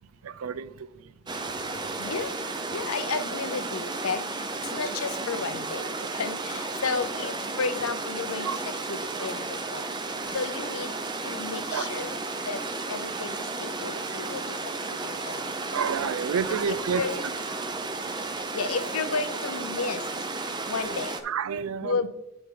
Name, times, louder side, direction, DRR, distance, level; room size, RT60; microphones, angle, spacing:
voice 1, 0.2-1.1 1.5-1.8 8.4-8.6 9.1-9.3 9.8-9.9 11.7-12.2 14.0-14.2 15.7-17.0 21.2-22.0, right 6 dB, 80° right, 0.4 m, -30 dB
sound 1, 1.3-21.2, right 3 dB, 20° right, 0.6 m, -33 dB
voice 2, 2.0-2.3 2.7-8.5 8.9-9.8 10.3-11.0 11.2-12.2 12.4-12.6 12.9-14.6 14.9-15.6 16.7-17.2 18.5-20.0 20.7-21.1 21.8-22.1, left 4 dB, 85° left, 0.7 m, -32 dB
8.2 x 6.1 x 3.8 m
head